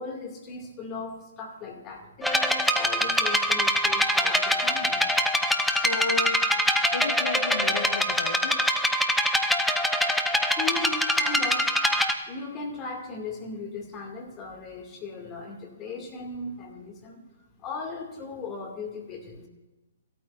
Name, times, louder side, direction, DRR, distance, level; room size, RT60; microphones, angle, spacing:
voice 1, 0.0-5.0 10.6-11.7 12.3-17.2 17.6-19.5, left 4 dB, 25° left, 2 dB, 2.3 m, -37 dB
sound 1, 2.2-12.1, equal, ahead, 0.8 m, -24 dB
voice 2, 5.7-6.4 6.9-8.6, left 4 dB, 70° left, 6 dB, 1.6 m, -32 dB
16.5 x 13.0 x 2.6 m, 1.1 s
figure-of-eight pair, 125°, 0 cm